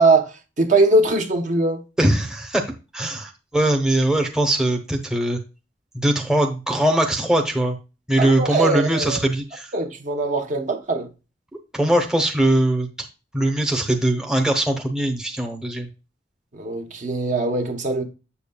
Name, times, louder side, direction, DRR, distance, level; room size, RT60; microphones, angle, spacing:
voice 1, 0.0-1.8 8.2-9.2 9.7-11.1 16.5-18.0, right 2 dB, 45° right, 1.0 m, -21 dB
voice 2, 2.0-2.6 2.9-5.4 5.9-7.8 8.1-9.7 11.7-13.1 13.3-15.9, right 1 dB, 5° right, 0.8 m, -21 dB
7.6 x 7.0 x 2.3 m
head